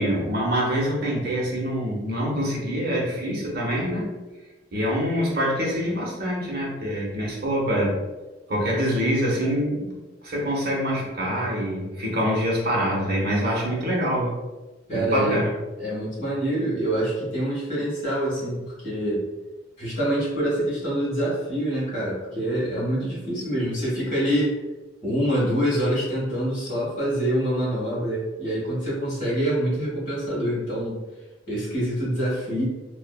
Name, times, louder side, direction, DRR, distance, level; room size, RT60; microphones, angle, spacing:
voice 1, 0.0-4.1 4.7-7.9 8.5-10.0 10.2-14.3 14.9-15.5, equal, 55° right, -3 dB, 0.8 m, -25 dB
voice 2, 14.9-15.4 15.8-19.2 19.8-24.5 25.0-31.0 31.5-32.6, right 1 dB, 45° left, -7 dB, 1.4 m, -25 dB
2.8 x 2.4 x 2.2 m, 1.2 s
head